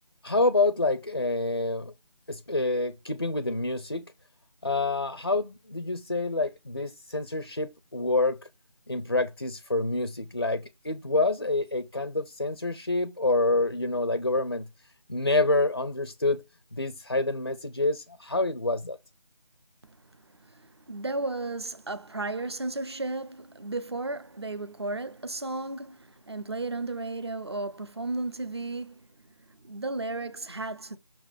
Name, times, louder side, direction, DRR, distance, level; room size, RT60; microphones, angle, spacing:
voice 1, 0.2-1.9 2.3-4.0 4.6-8.4 8.9-14.6 15.1-16.4 16.8-19.0, left 2 dB, 35° left, 0.5 m, -27 dB
voice 2, 20.2-29.0 29.5-31.0, right 2 dB, 40° right, 0.7 m, -34 dB
6.0 x 3.9 x 4.8 m
figure-of-eight pair, 165°, 21 cm